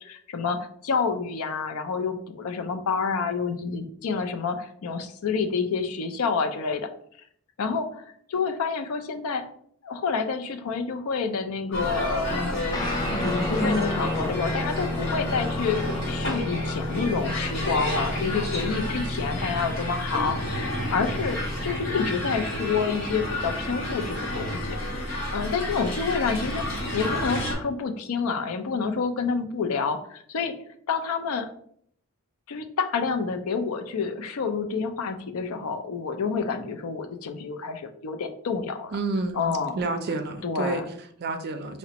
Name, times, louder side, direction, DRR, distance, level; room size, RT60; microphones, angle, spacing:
voice 1, 0.0-6.9 7.6-9.4 9.8-26.6 26.9-30.5 30.9-31.5 32.5-38.9 39.4-39.7 40.4-40.8, left 5 dB, 80° left, 7 dB, 0.4 m, -28 dB
sound 1, 11.7-27.5, equal, 55° left, 1.4 m, -30 dB
Guitar, 12.7-22.5, left 2 dB, 15° left, 0.3 m, -32 dB
voice 2, 38.9-41.8, right 3 dB, 50° right, 7 dB, 0.4 m, -30 dB
4.9 x 2.1 x 2.8 m, 0.64 s
head